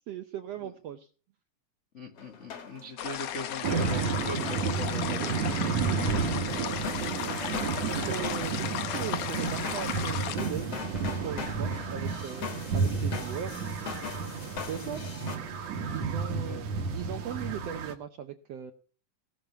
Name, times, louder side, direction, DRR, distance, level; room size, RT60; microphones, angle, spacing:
voice 1, 0.1-1.1 6.3-7.4 7.9-10.7 11.1-13.5 14.7-15.0 15.9-18.7, right 9 dB, 75° right, 7 dB, 1.4 m, -39 dB
voice 2, 1.9-5.3 14.8-14.9 16.3-16.7, left 2 dB, 85° left, 4 dB, 0.6 m, -40 dB
sound 1, 2.2-15.4, left 5 dB, 50° left, 2.6 m, -41 dB
sound 2, 3.0-10.4, left 11 dB, 70° left, 1.8 m, -35 dB
sound 3, 3.6-17.9, right 5 dB, 60° right, 2.2 m, -31 dB
18.5 x 6.4 x 5.6 m, 0.39 s
omnidirectional pair, 3.8 m